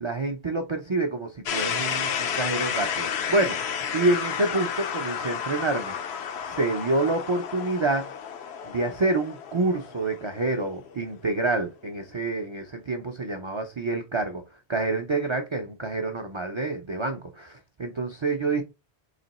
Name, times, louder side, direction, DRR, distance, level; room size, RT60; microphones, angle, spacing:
voice 1, 0.0-8.1 8.6-14.4 14.7-18.6, right 2 dB, 45° right, 0.4 m, -27 dB
sound 1, 1.5-11.3, left 7 dB, 75° left, 0.9 m, -32 dB
3.3 x 2.9 x 4.1 m
omnidirectional pair, 1.1 m